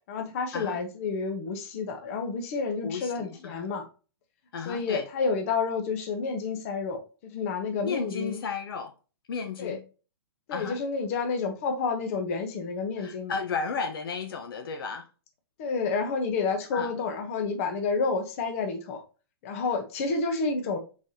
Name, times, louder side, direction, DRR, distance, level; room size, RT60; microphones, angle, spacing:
voice 1, 0.1-3.8 4.7-7.0 7.3-8.4 9.6-9.8 10.5-13.3 15.6-19.0 19.4-20.8, left 4 dB, 35° left, 0.9 m, -29 dB
voice 2, 2.8-3.7 4.5-5.1 7.8-8.9 9.3-9.8 10.5-10.8 13.0-15.1 16.7-16.9, left 5 dB, 60° left, 0.8 m, -33 dB
4.6 x 4.1 x 2.7 m
hypercardioid pair, 165°, 13 cm